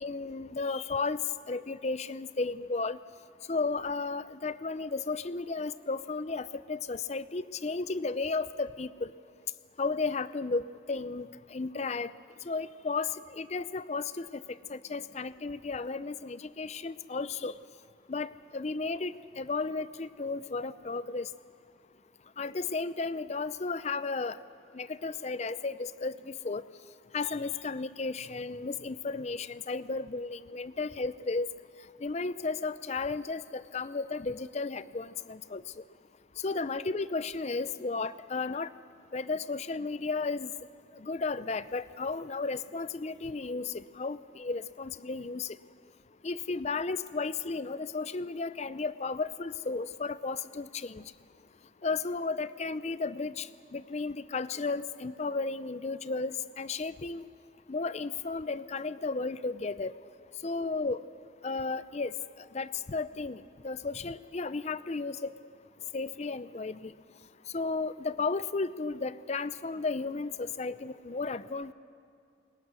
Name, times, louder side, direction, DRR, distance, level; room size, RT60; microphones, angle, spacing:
voice 1, 0.0-1.2 1.5-3.0 3.5-9.1 9.8-12.1 12.5-14.4 14.7-17.5 18.1-21.3 22.4-24.4 24.7-26.6 27.1-31.5 32.0-35.6 36.4-38.7 39.1-40.5 41.0-45.6 46.2-51.0 51.8-53.5 53.7-57.2 57.7-59.9 60.4-61.0 61.4-62.1 62.5-65.3 65.9-66.9 67.5-71.7, left 3 dB, 35° left, 15 dB, 0.5 m, -34 dB
28.0 x 21.5 x 6.2 m, 2.5 s
head